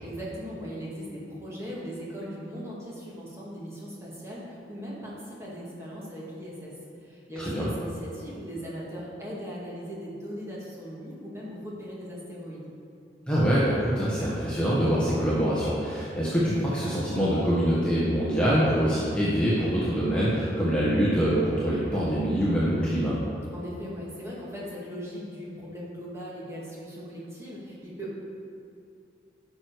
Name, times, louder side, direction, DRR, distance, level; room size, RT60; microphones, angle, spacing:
voice 1, 0.0-6.7 7.0-12.7 23.5-28.1, equal, 15° right, -6 dB, 2.1 m, -39 dB
voice 2, 13.3-23.2, equal, 5° left, -9 dB, 1.4 m, -24 dB
12.0 x 6.4 x 4.7 m, 2.6 s
head